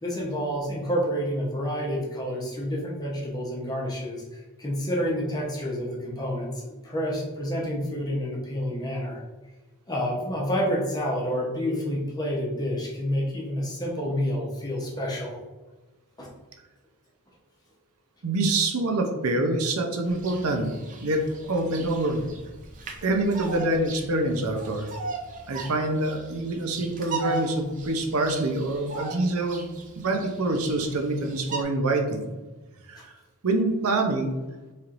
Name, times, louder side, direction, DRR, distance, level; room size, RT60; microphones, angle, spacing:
voice 1, 0.0-9.2 9.9-15.4 16.2-16.3 33.0-33.1, equal, 15° left, -3 dB, 0.8 m, -29 dB
voice 2, 18.2-20.7 21.0-21.2 21.5-22.3 23.0-24.9 25.5-29.7 30.0-32.2 32.9-33.1 33.4-34.3, right 2 dB, 75° right, 3 dB, 0.6 m, -26 dB
Bird vocalization bird call bird song, 20.0-31.6, right 3 dB, 35° right, 0.5 m, -38 dB
4.4 x 3.2 x 2.5 m, 1.2 s
head